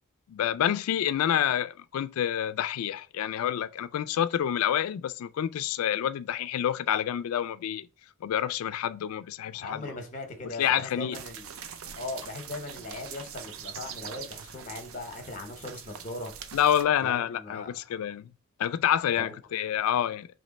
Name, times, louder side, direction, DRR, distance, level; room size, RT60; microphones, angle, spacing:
voice 1, 0.3-7.9 8.2-9.8 10.6-11.2 16.5-18.3 18.6-20.3, left 10 dB, 80° left, 0.3 m, -28 dB
voice 2, 9.5-11.6 12.0-16.3 17.0-17.7 19.2-19.3, left 2 dB, 35° left, 0.8 m, -39 dB
sound 1, 11.1-16.8, right 8 dB, 70° right, 0.4 m, -43 dB
3.2 x 2.9 x 4.0 m
head